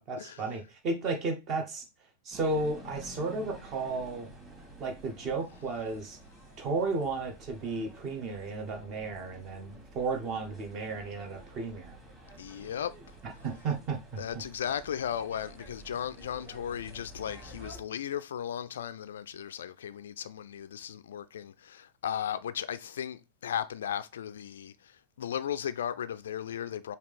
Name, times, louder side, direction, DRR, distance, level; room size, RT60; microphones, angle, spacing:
voice 1, 0.0-1.8 2.2-4.3 4.8-6.2 6.6-11.9 13.2-14.4, right 3 dB, 35° right, 1.2 m, -33 dB
sound 1, 2.3-17.8, right 1 dB, 15° right, 1.8 m, -50 dB
voice 2, 12.4-12.9 14.2-27.0, left 9 dB, 60° left, 0.3 m, -36 dB
4.8 x 2.8 x 3.5 m
figure-of-eight pair, 95°, 0 cm